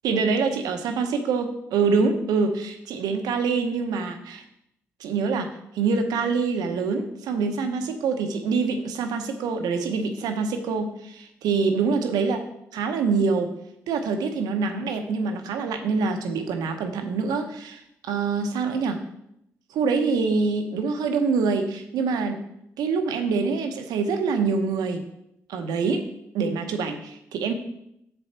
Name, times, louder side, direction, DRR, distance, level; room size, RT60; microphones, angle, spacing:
voice 1, 0.0-4.4 5.0-5.5 5.7-12.4 12.7-13.5 13.9-19.0 19.7-22.4 22.8-25.0 25.5-26.0 26.3-27.5, right 4 dB, 75° right, 6 dB, 0.9 m, -25 dB
7.1 x 6.8 x 4.3 m, 0.76 s
hypercardioid pair, 40°, 7 cm